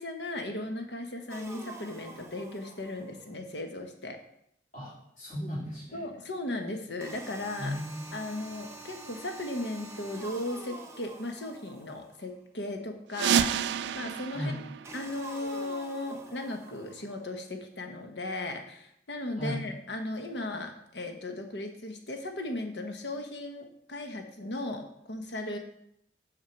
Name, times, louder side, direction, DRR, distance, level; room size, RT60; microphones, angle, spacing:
voice 1, 0.0-4.2 5.9-7.8 8.1-25.6, left 1 dB, 85° left, 4 dB, 1.2 m, -37 dB
sound 1, 1.3-3.3 7.0-12.3 14.8-17.2, right 3 dB, 15° right, 0.8 m, -47 dB
voice 2, 4.7-6.1 7.6-8.1 14.3-14.6 19.4-19.7, left 1 dB, 45° left, -6 dB, 3.4 m, -36 dB
sound 2, 13.1-15.7, right 9 dB, 75° right, 0.3 m, -30 dB
7.7 x 5.7 x 4.6 m, 0.72 s
head